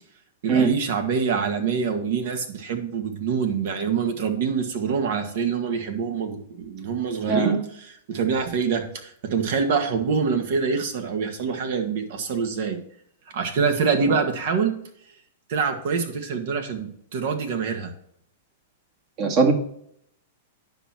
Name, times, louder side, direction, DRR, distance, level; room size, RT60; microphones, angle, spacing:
voice 1, 0.4-7.6 7.8-12.8 13.3-14.7 15.5-17.9, right 5 dB, 65° right, 5 dB, 1.9 m, -25 dB
voice 2, 7.2-7.6 19.2-19.5, right 5 dB, 40° right, 3 dB, 2.1 m, -19 dB
9.9 x 6.0 x 4.6 m, 0.69 s
hypercardioid pair, 125°, 0 cm